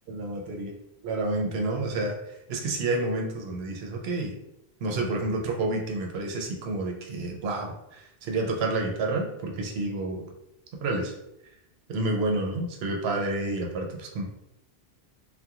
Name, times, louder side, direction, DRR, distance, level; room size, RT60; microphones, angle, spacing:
voice 1, 0.1-0.7 1.0-2.2 2.5-4.3 4.8-10.3 10.8-11.1 11.9-14.2, right 2 dB, 80° right, 1 dB, 0.8 m, -29 dB
2.3 x 2.2 x 2.8 m, 0.86 s
omnidirectional pair, 1.0 m